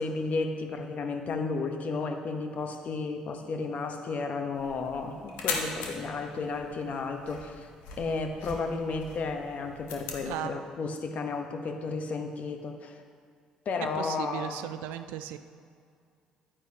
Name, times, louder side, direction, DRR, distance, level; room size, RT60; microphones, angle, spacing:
voice 1, 0.0-7.7 8.0-13.0 13.6-14.6, left 4 dB, 50° left, 5 dB, 1.0 m, -33 dB
sound 1, 4.5-10.3, left 4 dB, 75° left, 1.1 m, -40 dB
voice 2, 10.3-10.6 14.0-15.4, right 12 dB, 75° right, 11 dB, 0.4 m, -36 dB
10.0 x 9.1 x 2.8 m, 2.2 s
hypercardioid pair, 55°, 3 cm